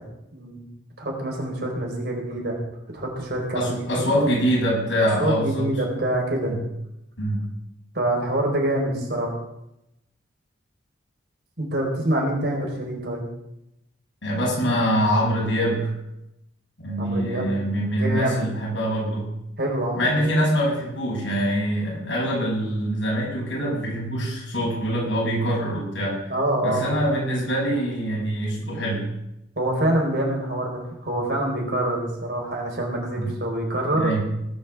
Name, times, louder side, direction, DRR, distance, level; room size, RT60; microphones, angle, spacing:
voice 1, 0.3-0.6 1.0-2.6 2.9-3.7 5.2-6.5 7.9-9.3 11.6-13.3 17.0-17.5 18.0-18.4 19.6-20.3 26.3-27.1 29.6-34.1, right 1 dB, 60° right, -1 dB, 4.6 m, -25 dB
voice 2, 3.5-5.7 6.4-6.6 7.2-7.4 14.2-15.9 16.8-19.3 19.9-26.3 26.6-29.1 33.2-33.3 33.9-34.2, equal, 70° left, -4 dB, 7.0 m, -24 dB
19.0 x 6.7 x 7.3 m, 0.87 s
head